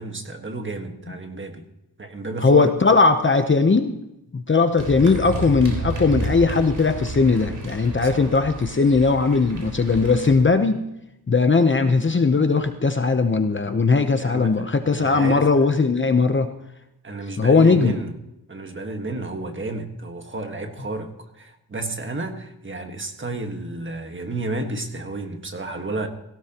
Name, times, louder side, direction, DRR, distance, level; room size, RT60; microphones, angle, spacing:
voice 1, 0.0-1.7 2.0-2.7 8.0-8.3 14.2-14.7 14.9-15.5 17.0-18.1 18.5-26.1, right 2 dB, 30° right, 5 dB, 1.6 m, -31 dB
voice 2, 2.4-4.0 4.3-10.8 11.3-16.5 17.4-18.0, left 4 dB, 30° left, 7 dB, 0.8 m, -19 dB
sound 1, 4.8-10.3, right 2 dB, 50° right, 3.9 m, -31 dB
17.5 x 16.5 x 3.0 m, 0.86 s
wide cardioid pair, 150°, 38 cm